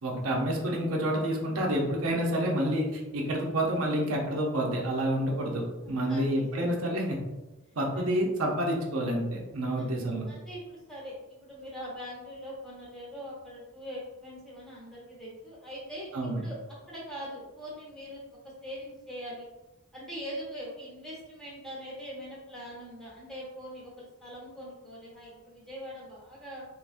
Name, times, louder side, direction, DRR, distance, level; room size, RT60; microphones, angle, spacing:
voice 1, 0.0-7.2 7.8-10.3 16.1-16.4, right 1 dB, 75° right, -1 dB, 0.7 m, -28 dB
voice 2, 6.0-6.7 7.9-8.1 10.3-16.6 16.9-18.2 18.6-19.5 19.9-26.7, equal, ahead, -6 dB, 1.0 m, -42 dB
3.4 x 3.1 x 2.5 m, 1.1 s
head